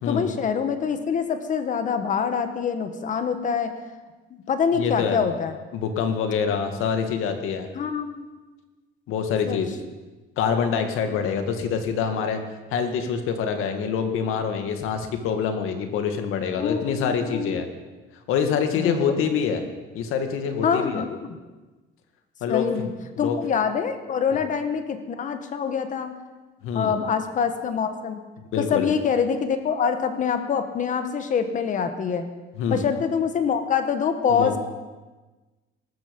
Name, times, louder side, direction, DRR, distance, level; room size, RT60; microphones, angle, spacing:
voice 1, 0.1-3.7 4.3-5.6 7.7-8.3 9.5-9.6 16.6-17.6 18.8-19.2 20.6-21.4 22.5-22.9 23.2-26.1 26.7-28.2 28.6-32.3 32.7-34.6, left 6 dB, 35° left, 9 dB, 1.4 m, -25 dB
voice 2, 4.7-5.2 5.7-7.7 9.1-9.7 10.4-12.4 12.7-17.7 18.3-19.6 19.9-21.0 22.4-22.7 23.2-23.4 24.3-24.4 26.6-26.9 28.5-28.9 32.6-32.8 34.4-34.6, left 6 dB, 80° left, 6 dB, 2.0 m, -25 dB
19.0 x 13.5 x 5.3 m, 1.2 s
cardioid pair, 170°, 21 cm